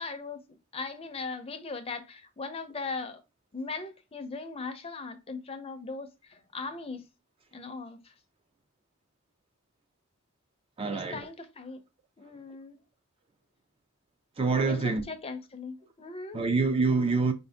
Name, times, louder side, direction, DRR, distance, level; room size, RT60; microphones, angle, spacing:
voice 1, 0.0-3.2 3.5-7.1 7.5-8.1 10.9-11.8 12.2-12.8 14.6-16.4, left 4 dB, 25° left, 0.5 m, -39 dB
voice 2, 10.8-11.3 14.4-15.0 16.3-17.3, right 4 dB, 25° right, 0.4 m, -26 dB
4.9 x 2.6 x 3.4 m
head